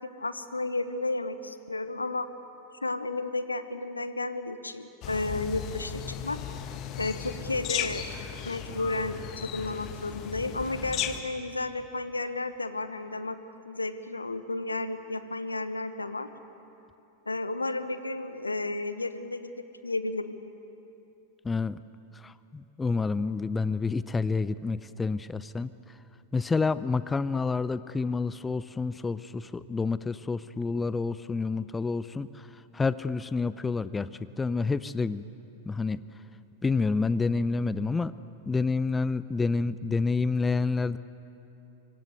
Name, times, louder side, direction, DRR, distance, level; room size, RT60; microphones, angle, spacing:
voice 1, 0.2-2.3 2.8-6.4 7.0-8.1 8.4-13.4 13.6-16.3 17.3-19.5 19.8-20.3, left 2 dB, 80° left, 12 dB, 1.1 m, -32 dB
sound 1, 5.0-11.2, left 10 dB, 35° left, 1.6 m, -36 dB
voice 2, 21.4-21.8 22.1-26.0 26.3-35.2 35.6-36.0 36.6-38.1 38.5-41.0, left 4 dB, 15° left, 16 dB, 0.5 m, -29 dB
25.5 x 24.0 x 8.2 m, 3.0 s
figure-of-eight pair, 90°, 0 cm